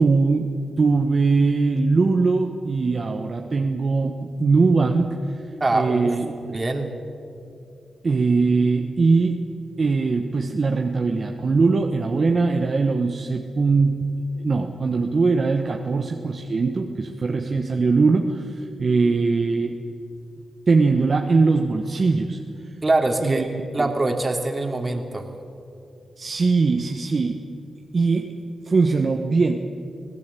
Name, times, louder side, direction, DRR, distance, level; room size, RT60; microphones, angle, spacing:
voice 1, 0.0-5.4 5.7-6.6 8.0-9.4 9.8-14.2 14.4-19.8 20.7-22.4 23.2-23.5 26.2-27.4 27.9-29.5, right 4 dB, 50° right, 3 dB, 1.4 m, -21 dB
voice 2, 5.6-6.1 6.5-6.9 22.8-23.5 23.7-25.3, right 2 dB, 30° right, 4 dB, 2.9 m, -23 dB
25.0 x 17.0 x 8.4 m, 2.6 s
cardioid pair, 65°, 0 cm